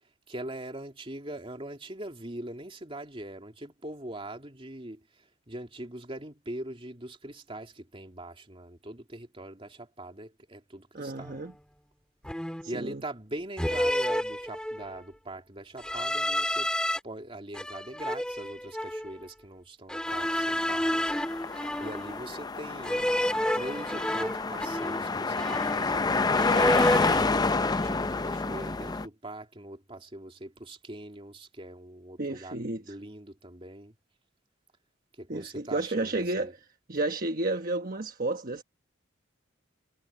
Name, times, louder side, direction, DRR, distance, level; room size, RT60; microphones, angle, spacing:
voice 1, 0.3-11.4 12.7-16.7 17.0-21.1 21.5-23.1 23.5-26.8 27.3-33.9 35.2-36.5, right 1 dB, 30° right, 2.7 m, -42 dB
voice 2, 10.9-11.5 12.6-13.0 32.2-32.9 35.3-36.5 36.9-38.6, right 2 dB, 45° right, 1.2 m, -31 dB
sound 1, 11.2-11.4 12.2-12.8 13.6-15.0 15.8-17.0 17.5-19.1 19.9-22.3 22.8-25.1 25.4-26.1 26.4-27.3, equal, 5° left, 2.5 m, -30 dB
sound 2, 20.1-29.1, left 3 dB, 20° left, 0.5 m, -29 dB
head